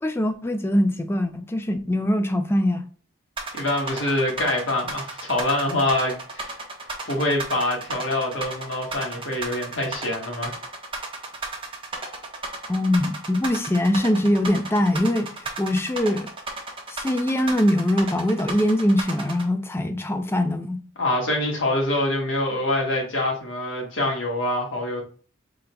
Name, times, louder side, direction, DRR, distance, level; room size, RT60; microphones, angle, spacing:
voice 1, 0.0-2.9 12.7-16.3 16.9-20.8, left 1 dB, 10° left, 0.4 m, -22 dB
sound 1, 3.4-19.4, right 3 dB, 25° right, 0.9 m, -33 dB
voice 2, 3.5-6.5 6.8-10.5 21.0-25.0, left 1 dB, 65° left, 1.6 m, -25 dB
4.5 x 3.9 x 2.2 m
head